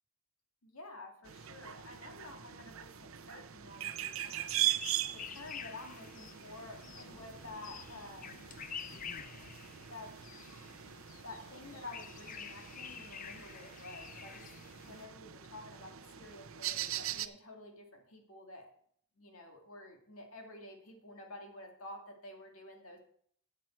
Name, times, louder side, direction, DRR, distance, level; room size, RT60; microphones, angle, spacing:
voice 1, 0.6-4.7 5.1-8.5 9.9-10.2 11.2-14.5 14.8-18.7 19.2-23.0, left 2 dB, 85° left, 2 dB, 2.3 m, -50 dB
sound 1, 1.2-17.3, right 13 dB, 75° right, 0.6 m, -41 dB
sound 2, 4.2-15.0, left 7 dB, 40° left, 0.5 m, -49 dB
12.0 x 7.6 x 4.5 m, 0.62 s
head